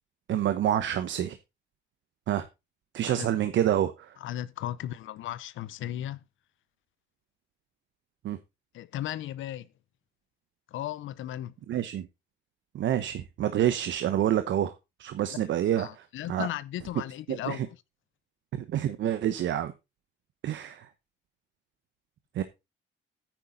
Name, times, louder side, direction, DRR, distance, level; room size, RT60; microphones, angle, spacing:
voice 1, 0.3-1.4 2.3-2.5 2.9-4.2 8.2-8.4 11.7-12.1 12.7-16.5 17.3-17.7 18.5-19.7 20.4-20.9 22.3-22.4, right 11 dB, 70° right, 0.9 m, -28 dB
voice 2, 4.2-6.2 8.7-9.7 10.7-11.5 15.3-15.4 15.8-17.6, left 12 dB, 80° left, 0.7 m, -36 dB
9.3 x 9.1 x 3.9 m
cardioid pair, 90°, 20 cm